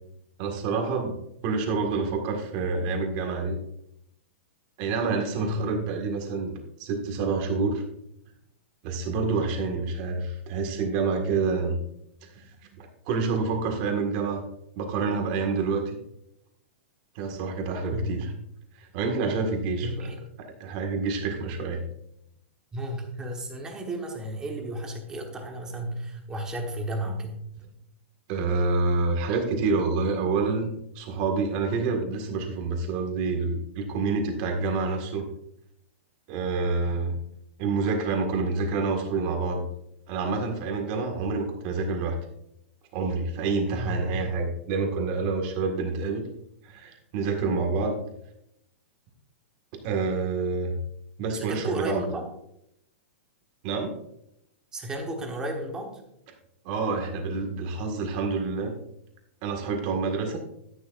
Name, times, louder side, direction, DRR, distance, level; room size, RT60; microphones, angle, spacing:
voice 1, 0.4-1.1 1.4-3.6 4.8-7.8 8.8-11.8 12.2-12.4 12.7-14.4 14.8-16.0 17.2-18.3 18.8-21.8 28.3-30.7 31.0-35.3 36.3-37.1 37.6-39.6 40.1-42.2 42.9-46.2 46.6-48.0 49.8-50.7 51.2-52.0 53.6-54.0 56.6-58.7 59.4-60.4, right 4 dB, 30° right, 3 dB, 1.8 m, -28 dB
voice 2, 5.4-5.7 17.9-18.2 19.8-20.2 22.7-27.3 43.7-44.0 51.3-52.3 54.7-56.0, right 1 dB, 10° right, 2 dB, 1.2 m, -33 dB
12.0 x 11.0 x 2.5 m, 0.77 s
supercardioid pair, 175°, 7 cm